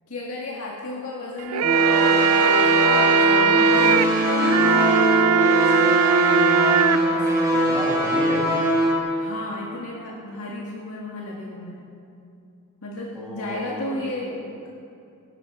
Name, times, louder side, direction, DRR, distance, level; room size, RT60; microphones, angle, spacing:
voice 1, 0.1-5.4 5.7-6.5 7.1-7.5 9.2-11.9 12.8-14.7, left 2 dB, 80° left, -3 dB, 1.9 m, -34 dB
sound 1, 1.4-7.0, right 7 dB, 85° right, 0.4 m, -20 dB
sound 2, 1.6-9.0, equal, 15° right, 3.7 m, -21 dB
voice 2, 7.5-8.5 13.1-14.3, equal, ahead, -5 dB, 3.1 m, -33 dB
21.5 x 11.5 x 4.8 m, 2.6 s
head